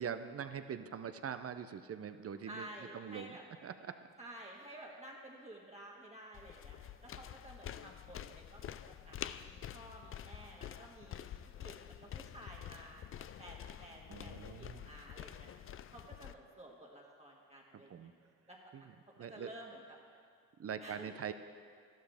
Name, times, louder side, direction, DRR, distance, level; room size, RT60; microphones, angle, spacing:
voice 1, 0.0-4.1 14.1-14.9 17.7-18.1 18.7-19.5 20.6-21.3, right 7 dB, 40° right, 10 dB, 0.6 m, -43 dB
voice 2, 2.4-3.4 4.2-6.8 7.0-15.5 15.9-18.1 18.5-18.6 19.3-20.0 20.8-21.1, right 1 dB, 15° right, -2 dB, 1.7 m, -52 dB
sound 1, 6.3-16.3, left 10 dB, 35° left, 0.4 m, -48 dB
12.0 x 11.5 x 3.5 m, 2.1 s
supercardioid pair, 65°, 38 cm